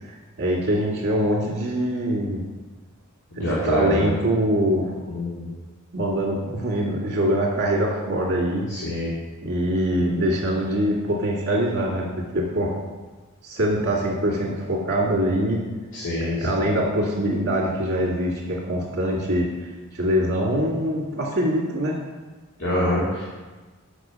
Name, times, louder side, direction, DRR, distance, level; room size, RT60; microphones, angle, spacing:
voice 1, 0.0-2.4 3.4-4.9 5.9-8.7 9.4-12.7 13.4-15.6 16.2-22.0, equal, 50° right, -3 dB, 2.1 m, -24 dB
voice 2, 3.4-4.1 5.1-5.5 8.7-9.1 10.0-10.1 15.9-16.6 22.6-23.2, left 1 dB, 60° left, -8 dB, 2.1 m, -25 dB
5.9 x 5.9 x 6.3 m, 1.3 s
head